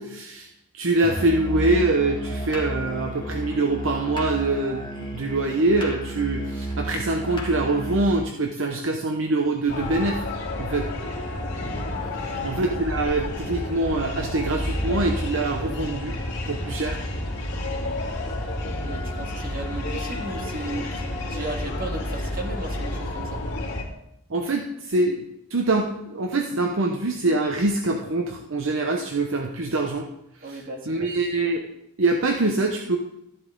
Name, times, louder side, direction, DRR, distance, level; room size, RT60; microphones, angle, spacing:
voice 1, 0.0-10.2 10.6-10.9 12.4-16.1 16.5-17.0 24.3-25.3 25.5-30.1 30.4-31.6 32.0-33.0, right 2 dB, 65° right, 3 dB, 0.9 m, -24 dB
Musical instrument, 1.0-8.1, right 1 dB, 20° left, 1.9 m, -32 dB
sound 1, 9.7-23.8, left 1 dB, 60° left, 2.9 m, -30 dB
voice 2, 11.9-12.6 18.8-23.4 30.4-31.1, right 2 dB, 45° right, 2 dB, 2.0 m, -36 dB
sound 2, 13.9-23.0, equal, 5° right, 2.7 m, -46 dB
13.5 x 11.0 x 3.9 m, 0.83 s
head